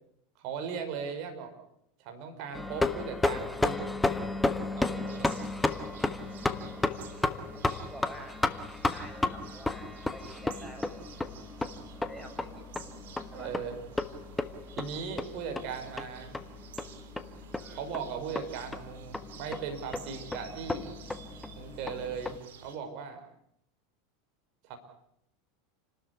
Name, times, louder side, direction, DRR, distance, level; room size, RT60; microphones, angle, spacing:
voice 1, 0.4-1.5 2.0-4.0 4.8-5.4 13.3-13.8 14.8-16.3 17.7-20.9 21.5-22.4 22.6-23.2 24.6-24.8, right 6 dB, 55° right, 5 dB, 5.6 m, -38 dB
sound 1, 2.5-22.4, left 2 dB, 10° left, 1.5 m, -33 dB
sound 2, 5.1-22.8, right 6 dB, 75° right, 3.2 m, -51 dB
voice 2, 7.9-8.4 8.9-11.2 12.1-12.6 13.3-13.5 17.6-17.8, right 1 dB, 5° right, 4 dB, 6.8 m, -48 dB
29.5 x 13.0 x 9.9 m, 0.75 s
hypercardioid pair, 95°, 0 cm